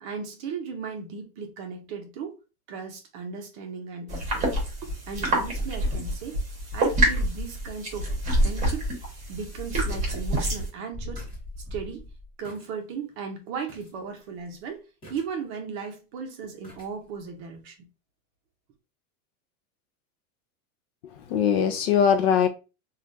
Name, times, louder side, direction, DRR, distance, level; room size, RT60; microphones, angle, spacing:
voice 1, 0.0-2.4 2.7-4.5 4.8-6.4 6.7-8.1 8.4-8.8 9.3-11.3 11.7-12.1 12.4-14.8 15.1-17.8, right 6 dB, 35° right, 0.6 m, -36 dB
sound 1, 4.1-10.7, right 1 dB, 15° right, 1.0 m, -27 dB
sound 2, 9.9-10.2 10.5-10.6 10.9-12.7 13.1-13.2 13.7-13.9 14.2-14.5 15.0-15.6 16.6-16.9 17.3-17.4, left 1 dB, 10° left, 1.0 m, -41 dB
voice 2, 21.0-22.5, left 8 dB, 45° left, 0.4 m, -22 dB
3.2 x 2.4 x 2.6 m
supercardioid pair, 160°, 44 cm